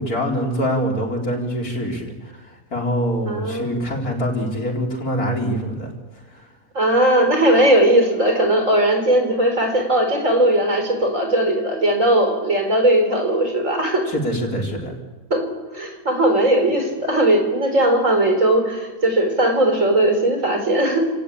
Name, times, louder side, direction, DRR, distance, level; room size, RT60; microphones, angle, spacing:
voice 1, 0.0-6.5 14.1-15.0, equal, 65° left, 0 dB, 4.7 m, -25 dB
voice 2, 3.3-3.7 6.7-14.1 15.3-15.4 15.7-21.1, right 1 dB, 50° right, 4 dB, 4.9 m, -18 dB
28.5 x 18.5 x 8.7 m, 1.2 s
omnidirectional pair, 1.7 m